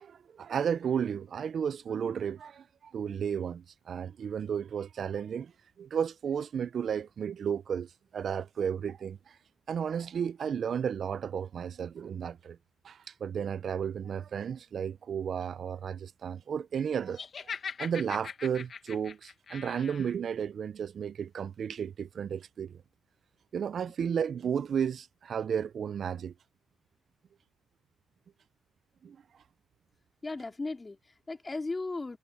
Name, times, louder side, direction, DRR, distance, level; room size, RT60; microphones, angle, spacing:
voice 1, 0.0-5.5 5.8-9.4 9.7-12.6 12.8-17.2 17.8-22.8 23.5-26.3 29.0-29.2, right 7 dB, 55° right, 0.5 m, -33 dB
Laughter, 17.1-20.1, left 6 dB, 45° left, 1.5 m, -41 dB
voice 2, 30.2-32.2, left 3 dB, 20° left, 3.2 m, -36 dB
cardioid pair, 90°, 0 cm